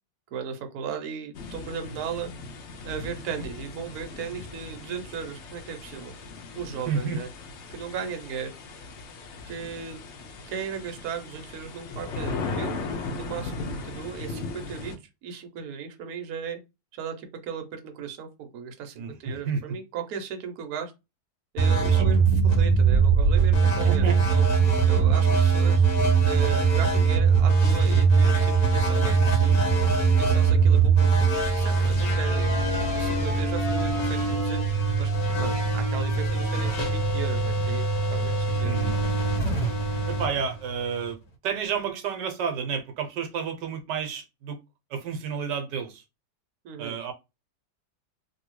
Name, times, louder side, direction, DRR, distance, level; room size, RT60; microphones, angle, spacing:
voice 1, 0.3-2.3 2.8-6.1 6.5-7.3 7.7-8.5 9.4-12.8 13.1-14.9 15.2-16.6 16.9-20.9 21.5-24.4 24.9-25.9 26.2-29.6 30.2-31.3 31.5-32.5 32.9-34.7 35.0-38.7 46.6-47.0, right 7 dB, 65° right, 1.1 m, -36 dB
sound 1, 1.3-15.0, left 3 dB, 85° left, 0.6 m, -37 dB
voice 2, 6.9-7.2 18.9-19.8 21.9-22.1 23.8-24.2 38.6-39.0 40.1-41.2 41.4-44.6 44.9-46.0 46.8-47.1, right 6 dB, 80° right, 1.2 m, -31 dB
sound 2, 21.6-41.1, right 5 dB, 60° left, 1.4 m, -22 dB
2.7 x 2.7 x 3.0 m
omnidirectional pair, 1.9 m